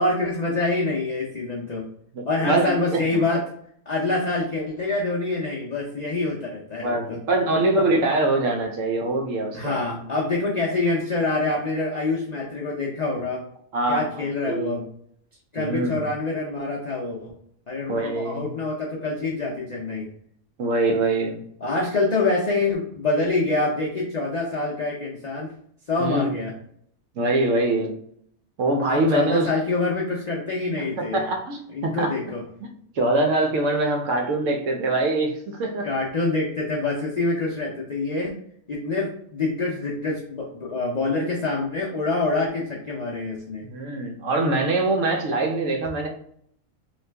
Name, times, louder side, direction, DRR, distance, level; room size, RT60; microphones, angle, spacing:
voice 1, 0.0-1.8 2.3-3.4 3.9-7.2 9.5-13.4 13.9-14.9 15.5-17.3 17.7-20.1 21.6-25.5 25.9-26.5 28.9-31.2 31.7-32.4 35.8-38.4 38.7-43.7, left 3 dB, 75° left, -3 dB, 0.3 m, -26 dB
voice 2, 2.1-3.0 6.8-9.8 13.7-14.8 15.6-16.0 17.9-18.5 20.6-21.4 26.0-26.3 27.2-27.9 28.6-29.5 31.1-32.1 32.9-35.9 43.7-46.1, right 2 dB, 70° right, 3 dB, 0.9 m, -23 dB
3.1 x 2.4 x 3.3 m, 0.68 s
omnidirectional pair, 1.5 m